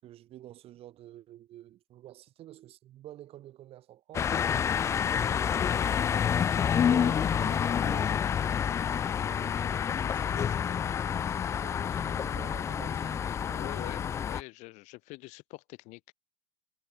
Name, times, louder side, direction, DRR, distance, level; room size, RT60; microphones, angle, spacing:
voice 1, 0.0-4.5 5.0-13.9, right 13 dB, 35° right, 7.2 m, -50 dB
sound 1, 4.1-14.4, left 8 dB, 15° left, 0.4 m, -28 dB
voice 2, 13.5-16.1, left 23 dB, 45° left, 4.8 m, -45 dB
figure-of-eight pair, 90°, 17 cm